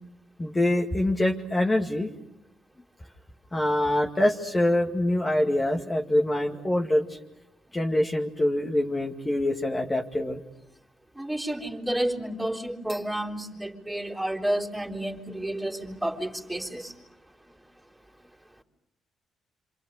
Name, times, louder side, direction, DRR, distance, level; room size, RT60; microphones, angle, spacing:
voice 1, 0.4-2.1 3.5-7.2 7.7-10.4, left 1 dB, 20° left, 2.1 m, -25 dB
voice 2, 11.2-16.9, right 1 dB, 10° right, 3.7 m, -30 dB
27.5 x 26.5 x 6.6 m
cardioid pair, 90°, 0 cm